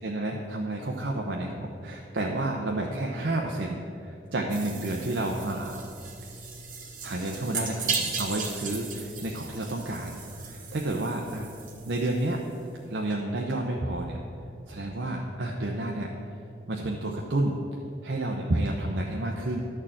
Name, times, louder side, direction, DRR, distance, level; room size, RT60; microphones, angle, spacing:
voice 1, 0.0-5.8 7.0-10.2 10.4-11.5 11.9-12.4 12.9-14.2 14.7-16.1 16.7-17.6 18.0-19.6, right 1 dB, 75° right, 0 dB, 0.8 m, -30 dB
sound 1, 4.5-12.6, right 4 dB, 45° right, 1.3 m, -37 dB
12.0 x 4.6 x 7.4 m, 2.6 s
head